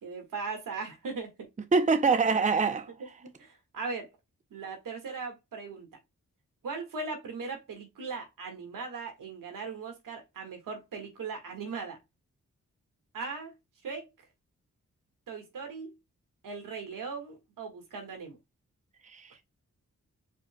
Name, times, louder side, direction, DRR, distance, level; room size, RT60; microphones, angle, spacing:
voice 1, 0.0-1.5 3.2-4.1 4.5-5.9 6.6-12.0 13.1-13.5 13.8-14.1 15.3-15.9 16.4-18.4, right 4 dB, 80° right, 1.8 m, -39 dB
voice 2, 1.7-2.9 19.1-19.4, right 4 dB, 25° right, 0.7 m, -24 dB
4.7 x 4.3 x 2.2 m
cardioid pair, 55°, 32 cm